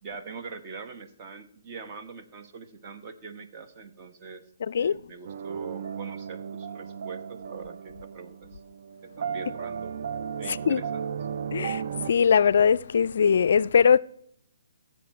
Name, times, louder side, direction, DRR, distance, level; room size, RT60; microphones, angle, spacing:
voice 1, 0.0-4.4 4.7-8.6 9.0-10.0 10.4-11.1, right 5 dB, 30° right, 1.1 m, -43 dB
voice 2, 4.7-5.0 10.5-10.8 11.5-14.0, left 7 dB, 60° left, 0.3 m, -21 dB
sound 1, 5.2-12.1, right 7 dB, 55° right, 0.4 m, -35 dB
16.5 x 7.4 x 4.6 m
hypercardioid pair, 145°, 0 cm